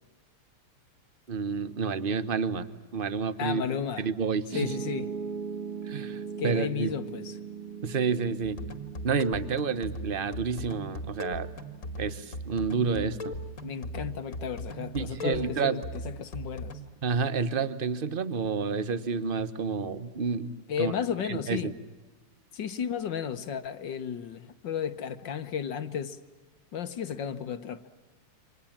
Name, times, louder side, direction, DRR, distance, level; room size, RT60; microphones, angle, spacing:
voice 1, 1.3-2.7 2.9-3.6 4.0-4.7 5.8-6.9 7.8-8.6 9.0-11.5 12.0-13.3 14.9-15.8 17.0-20.9 21.2-21.7, right 5 dB, 35° right, 0.9 m, -29 dB
voice 2, 3.4-4.1 4.5-5.1 6.4-7.3 13.6-16.8 20.7-21.7 22.5-26.2 26.7-27.8, left 8 dB, 60° left, 1.6 m, -33 dB
Piano, 4.5-16.7, right 6 dB, 90° right, 3.3 m, -41 dB
sound 1, 8.4-16.8, equal, 35° left, 2.1 m, -39 dB
29.5 x 25.5 x 7.3 m
omnidirectional pair, 2.4 m